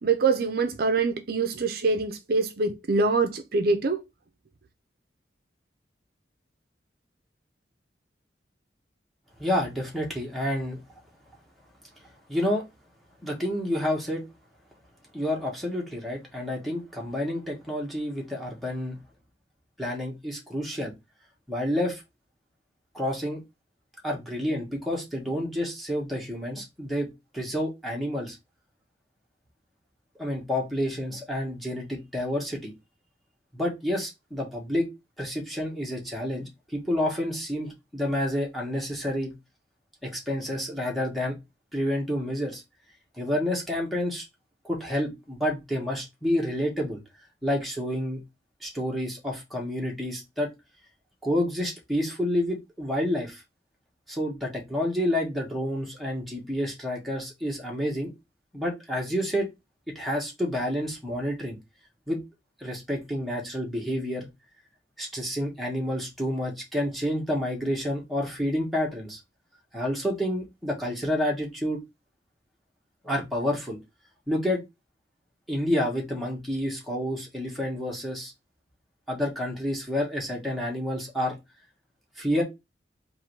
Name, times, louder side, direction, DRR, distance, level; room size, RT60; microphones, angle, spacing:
voice 1, 0.0-4.0, right 4 dB, 55° right, 0.6 m, -24 dB
voice 2, 9.4-10.8 12.3-12.6 13.2-14.2 15.1-19.0 19.8-20.9 21.5-22.0 22.9-23.4 24.0-27.1 27.3-28.4 30.2-32.7 33.5-34.9 35.2-39.3 40.0-41.4 41.7-42.6 43.2-44.2 44.6-47.0 47.4-48.2 48.6-50.5 51.2-53.4 54.1-58.1 58.5-59.5 59.9-61.6 62.1-62.2 62.6-64.3 65.0-69.2 69.7-71.8 73.0-73.8 74.3-74.6 75.5-78.3 79.1-81.3 82.2-82.4, left 1 dB, ahead, 1.4 m, -29 dB
3.6 x 2.7 x 4.5 m
head